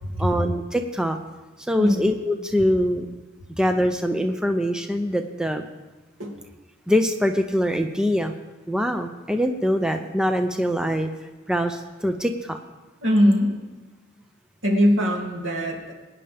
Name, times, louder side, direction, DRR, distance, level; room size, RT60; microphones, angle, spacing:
voice 1, 0.2-1.2 1.7-3.1 3.6-5.6 6.9-8.3 8.7-11.1 11.5-12.6, equal, 5° right, 6 dB, 0.6 m, -23 dB
voice 2, 13.0-13.6 14.6-15.9, equal, 85° right, 0 dB, 2.7 m, -21 dB
22.5 x 9.9 x 3.4 m, 1.2 s
head